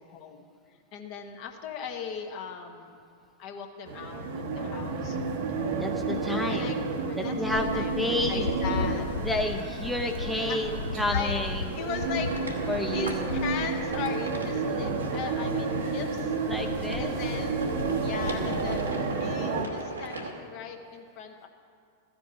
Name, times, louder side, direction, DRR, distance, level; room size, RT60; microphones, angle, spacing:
voice 1, 0.0-3.0 3.4-5.2 6.5-7.9 8.3-9.3 10.5-10.6 11.1-11.3 11.7-12.3 12.9-16.4 17.0-17.7 18.0-18.9 19.2-21.5, left 7 dB, 45° left, 4 dB, 1.0 m, -38 dB
sound 1, 3.9-19.7, right 3 dB, 55° right, 0.9 m, -31 dB
voice 2, 5.8-6.8 7.2-8.4 9.2-11.6 12.7-13.4 16.5-17.1, left 1 dB, ahead, 4 dB, 0.6 m, -30 dB
sound 2, 7.5-18.9, left 5 dB, 65° left, 0.4 m, -38 dB
sound 3, 11.3-20.3, right 2 dB, 80° right, 1.1 m, -39 dB
13.5 x 5.2 x 7.6 m, 2.2 s
figure-of-eight pair, 90°, 0 cm